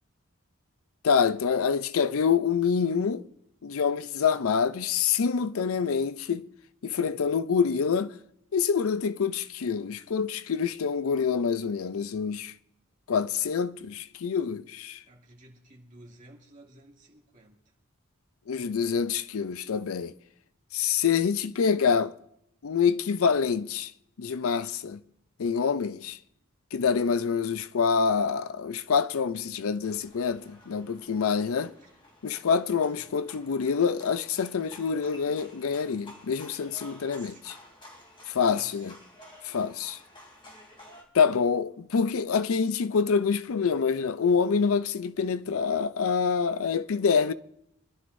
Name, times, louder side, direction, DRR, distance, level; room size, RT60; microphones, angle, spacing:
voice 1, 1.0-3.2 3.6-6.5 6.8-8.1 8.5-12.5 13.1-15.0 18.5-20.1 20.7-22.1 22.6-23.9 24.2-25.0 25.4-26.2 26.7-31.7 32.2-37.3 38.3-38.9 39.4-40.0 41.1-47.3, left 6 dB, 80° left, 0.5 m, -26 dB
voice 2, 15.0-17.6 31.8-31.9 32.9-33.1 36.9-37.5 38.5-38.9, right 2 dB, 40° right, 2.4 m, -53 dB
sound 1, 29.8-41.0, left 1 dB, 25° left, 3.0 m, -52 dB
26.0 x 11.5 x 2.6 m
head